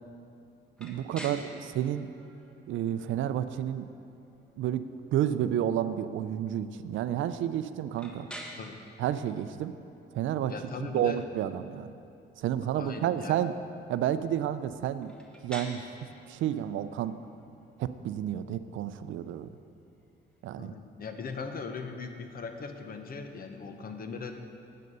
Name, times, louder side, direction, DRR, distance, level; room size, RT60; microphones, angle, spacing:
sound 1, 0.8-20.5, equal, 5° left, 1.3 m, -51 dB
voice 1, 0.8-2.1 2.7-3.9 4.6-4.8 5.1-8.3 9.0-9.7 10.1-10.5 10.9-11.9 12.4-13.5 13.9-15.1 15.4-15.8 16.3-17.2 17.8-19.5 20.4-20.7, right 10 dB, 75° right, 12 dB, 0.5 m, -30 dB
voice 2, 10.5-11.2 12.7-13.4 20.6-24.3, left 4 dB, 50° left, 6 dB, 0.9 m, -39 dB
9.4 x 7.6 x 5.4 m, 2.6 s
cardioid pair, 90°, 20 cm